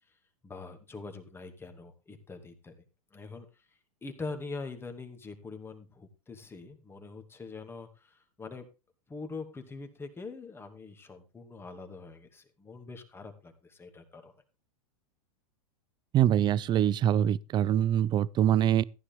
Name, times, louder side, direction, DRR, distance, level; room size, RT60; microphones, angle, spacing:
voice 1, 0.4-2.8 3.1-3.7 4.0-8.7 9.1-14.3, left 4 dB, 15° left, 2.4 m, -43 dB
voice 2, 16.1-18.8, right 10 dB, 25° right, 0.5 m, -24 dB
15.0 x 9.8 x 3.6 m
hypercardioid pair, 125°, 18 cm